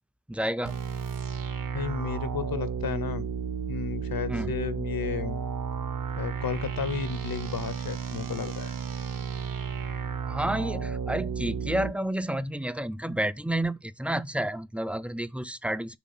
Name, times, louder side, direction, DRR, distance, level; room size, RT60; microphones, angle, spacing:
voice 1, 0.3-0.8 4.3-4.6 10.2-16.0, right 1 dB, 5° right, 0.4 m, -30 dB
sound 1, 0.6-11.9, right 6 dB, 70° right, 1.1 m, -33 dB
voice 2, 1.7-3.2 3.7-5.4 6.2-8.8, left 7 dB, 90° left, 1.0 m, -33 dB
6.1 x 3.8 x 5.6 m
wide cardioid pair, 105°, 35 cm